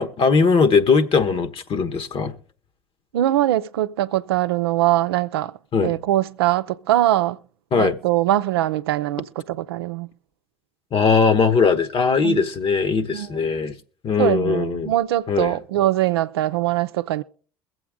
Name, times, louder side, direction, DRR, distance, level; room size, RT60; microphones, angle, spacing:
voice 1, 0.0-2.3 5.7-6.0 7.7-8.0 10.9-13.7 14.0-14.9 15.3-15.6, left 5 dB, 45° left, 1.2 m, -19 dB
voice 2, 3.1-5.5 5.8-7.4 7.8-10.1 12.2-12.4 13.1-13.3 14.2-17.2, right 14 dB, 85° right, 0.5 m, -22 dB
22.5 x 7.9 x 3.7 m
hypercardioid pair, 65°, 13 cm